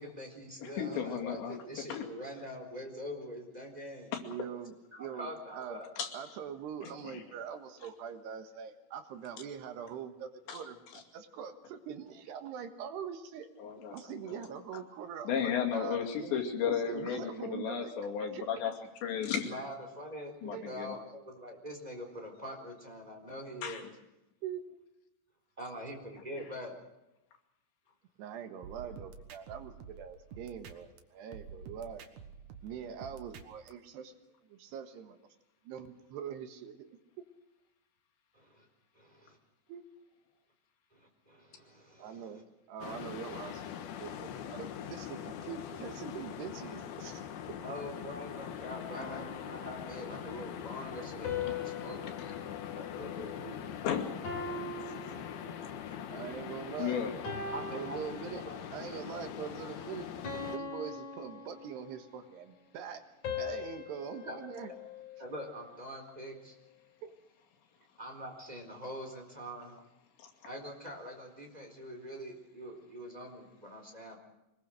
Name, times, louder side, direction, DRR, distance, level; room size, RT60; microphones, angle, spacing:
voice 1, 0.0-4.1 5.0-5.9 19.4-23.9 25.6-26.7 38.3-38.7 38.9-39.4 40.9-42.4 47.6-52.0 52.7-53.6 57.5-58.0 58.4-58.6 64.2-64.4 65.2-66.6 68.0-69.8 70.4-74.2, equal, 10° right, 2 dB, 3.8 m, -44 dB
voice 2, 0.6-1.6 1.9-2.1 4.1-4.2 6.0-6.1 6.8-7.2 10.5-10.6 13.6-14.5 15.3-18.7 19.0-19.5 20.4-21.0 23.6-23.9 26.4-26.5 53.8-56.1 56.8-57.1 70.2-70.3, left 7 dB, 85° left, 3 dB, 4.6 m, -35 dB
voice 3, 4.2-5.8 6.1-13.5 13.8-17.9 18.2-18.4 20.5-20.8 24.4-24.8 28.2-32.1 32.6-34.2 34.5-35.2 35.6-36.9 39.7-39.8 42.0-43.6 44.0-47.2 47.5-47.6 56.1-57.0 57.7-58.4 58.7-60.1 60.5-63.0 63.4-64.7 67.0-67.1, right 8 dB, 75° right, 7 dB, 3.5 m, -43 dB
sound 1, 28.6-31.0 31.3-33.7, right 6 dB, 60° right, 2.3 m, -49 dB
sound 2, 42.8-60.6, left 9 dB, 70° left, 3.1 m, -42 dB
sound 3, 49.0-50.3 51.2-53.8 54.2-56.0 56.5-56.8 57.2-58.8 59.3-59.5 60.2-62.1 63.2-65.6, left 5 dB, 40° left, 4.5 m, -42 dB
24.5 x 21.0 x 6.5 m, 0.91 s
omnidirectional pair, 5.0 m